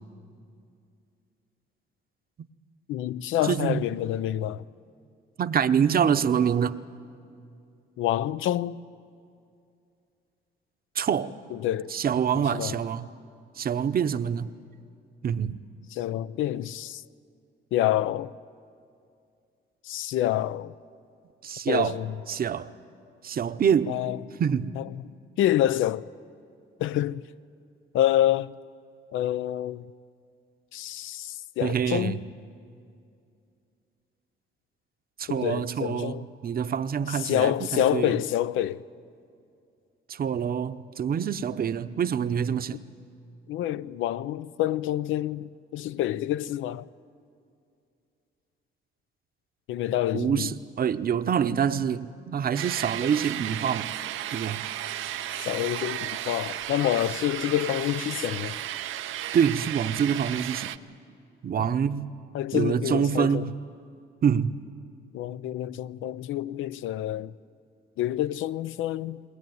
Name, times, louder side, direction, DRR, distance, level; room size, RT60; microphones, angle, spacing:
voice 1, 2.9-4.6 8.0-8.8 11.5-11.9 12.5-12.7 15.9-17.0 17.7-18.3 19.8-20.7 21.7-22.1 23.9-24.2 24.8-25.0 25.4-26.1 26.8-27.2 27.9-28.5 29.1-29.8 30.7-32.2 35.3-36.3 37.1-38.8 43.5-46.9 49.7-50.5 55.3-58.6 61.6-61.7 62.3-63.5 65.1-67.3 68.0-69.2, left 12 dB, 80° left, 0.5 m, -27 dB
voice 2, 3.4-3.9 5.4-6.8 10.9-11.3 11.9-13.1 13.6-14.5 15.2-15.6 21.4-22.0 22.3-22.7 23.2-24.0 24.4-24.7 31.6-32.2 35.2-38.2 40.1-42.8 50.1-53.9 54.3-54.7 59.3-60.7 61.4-62.1 62.5-63.5 64.2-64.5, right 8 dB, 50° right, 0.8 m, -26 dB
sound 1, 52.6-60.8, right 12 dB, 80° right, 0.6 m, -34 dB
21.5 x 19.0 x 9.4 m
cardioid pair, 90°, 20 cm